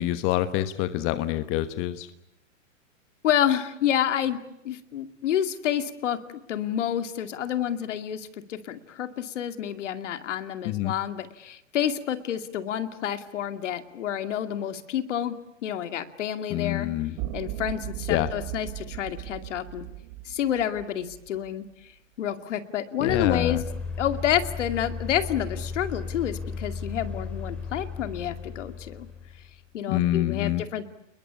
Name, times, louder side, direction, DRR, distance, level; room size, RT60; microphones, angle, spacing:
voice 1, 0.0-2.1 10.6-10.9 16.5-17.1 18.1-18.3 23.0-23.6 29.9-30.6, left 14 dB, 35° left, 11 dB, 1.3 m, -26 dB
voice 2, 3.2-4.4 4.6-6.2 6.5-15.4 15.6-16.9 17.3-19.8 20.3-21.7 22.2-23.6 24.0-29.1 29.7-30.9, left 10 dB, 65° left, 9 dB, 2.5 m, -29 dB
sound 1, 17.2-21.5, right 16 dB, 40° right, 1.5 m, -37 dB
sound 2, 23.1-29.6, left 4 dB, 5° left, 4.8 m, -35 dB
29.5 x 21.5 x 8.6 m, 0.80 s
hypercardioid pair, 125°, 38 cm